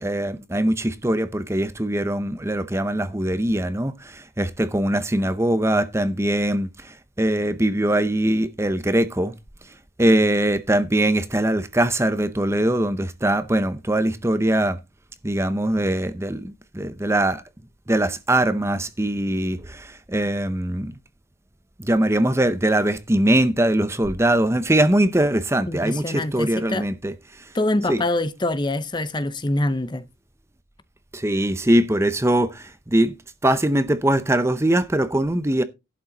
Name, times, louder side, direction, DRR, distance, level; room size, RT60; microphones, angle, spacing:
voice 1, 0.0-9.3 10.0-14.8 15.2-17.4 17.9-20.9 21.8-27.5 27.9-28.0 31.1-33.1 33.4-35.6, right 1 dB, 15° right, 0.7 m, -22 dB
voice 2, 25.7-26.9 27.5-30.0, left 2 dB, 20° left, 0.7 m, -25 dB
11.5 x 8.6 x 4.0 m
head